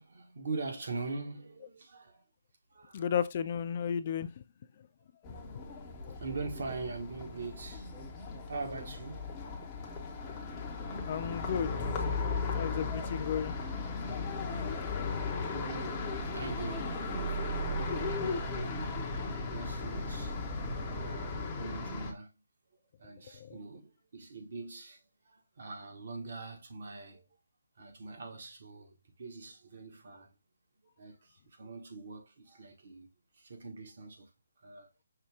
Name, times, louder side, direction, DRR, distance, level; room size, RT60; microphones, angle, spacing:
voice 1, 0.0-2.2 2.7-3.0 5.6-5.7 6.1-7.9 8.4-9.3 10.2-11.0 14.4-14.6 14.9-17.6 18.6-19.0 19.4-22.3 23.0-27.2 27.8-30.3 31.0-33.1 33.4-34.3 34.6-34.9, right 3 dB, 55° right, 1.4 m, -43 dB
voice 2, 2.9-4.4 4.8-4.9 5.5-5.6 6.0-6.2 11.1-12.0 12.5-13.5 23.3-23.6, left 8 dB, 40° left, 0.3 m, -34 dB
sound 1, 5.2-22.1, left 3 dB, 20° left, 0.9 m, -36 dB
5.6 x 2.3 x 3.4 m
figure-of-eight pair, 145°, 0 cm